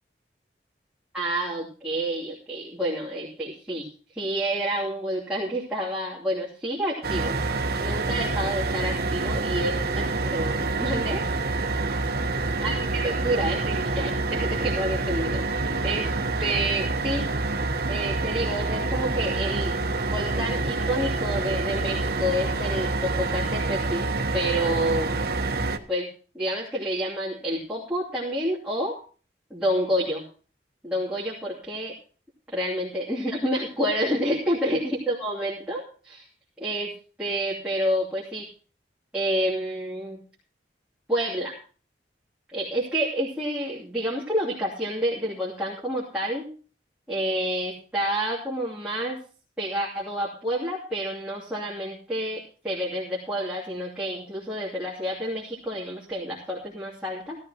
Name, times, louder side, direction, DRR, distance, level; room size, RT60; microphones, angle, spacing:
voice 1, 1.1-3.9 4.1-7.3 7.8-11.3 12.6-17.2 17.9-19.8 20.1-24.1 24.3-25.1 25.9-26.1 26.3-29.0 29.5-30.2 30.8-31.9 32.5-36.2 36.6-36.9 37.2-38.5 39.1-40.2 41.1-41.6 42.5-46.5 47.1-49.2 49.6-57.4, equal, 5° right, -7 dB, 2.9 m, -29 dB
sound 1, 7.0-25.8, right 3 dB, 60° right, 1.2 m, -27 dB
17.0 x 13.5 x 3.0 m, 0.39 s
head